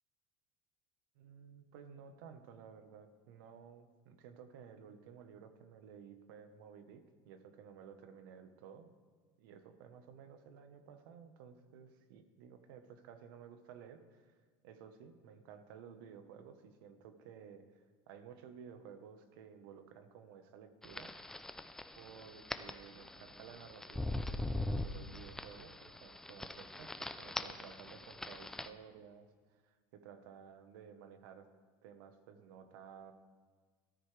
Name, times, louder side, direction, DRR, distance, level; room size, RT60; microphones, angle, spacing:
voice 1, 1.1-8.9 9.4-14.4 14.6-21.1 22.0-31.5 31.8-33.1, right 7 dB, 85° right, 9 dB, 1.1 m, -55 dB
sound 1, 20.8-28.7, left 1 dB, 5° left, 0.4 m, -42 dB
14.5 x 13.0 x 3.3 m, 1.5 s
cardioid pair, 145°, 11 cm